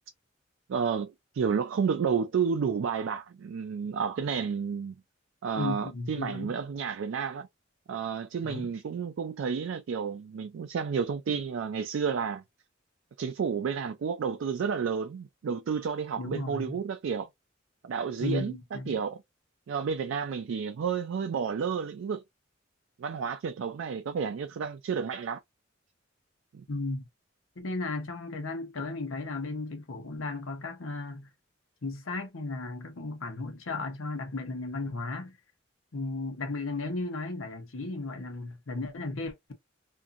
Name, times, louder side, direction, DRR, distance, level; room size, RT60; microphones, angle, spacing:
voice 1, 0.7-4.9 5.4-7.5 7.9-12.4 13.2-17.3 17.8-19.2 19.7-22.2 23.0-25.4 26.5-26.7, right 6 dB, 70° right, 0.3 m, -31 dB
voice 2, 5.6-6.5 8.4-8.7 11.3-11.4 16.2-16.8 18.2-18.9 26.7-27.0 27.6-31.3 31.8-35.4 35.9-39.5, left 3 dB, 90° left, 0.8 m, -35 dB
2.6 x 2.4 x 2.5 m
head